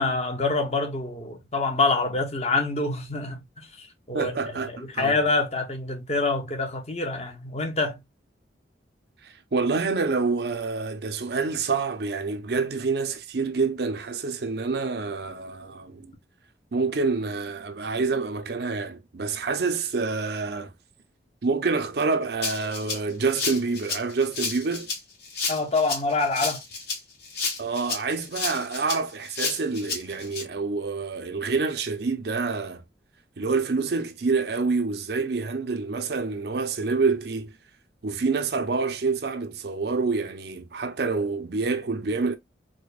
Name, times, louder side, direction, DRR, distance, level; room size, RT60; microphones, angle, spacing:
voice 1, 0.0-4.4 4.7-8.0 25.5-26.6, left 3 dB, 35° left, 0.7 m, -26 dB
voice 2, 4.1-5.2 9.2-16.1 16.7-20.7 21.4-24.9 27.6-32.8 33.4-37.5 38.0-42.4, right 4 dB, 65° right, 0.5 m, -27 dB
Rattle (instrument), 22.4-30.4, left 4 dB, 65° left, 1.9 m, -31 dB
4.8 x 2.2 x 2.4 m
head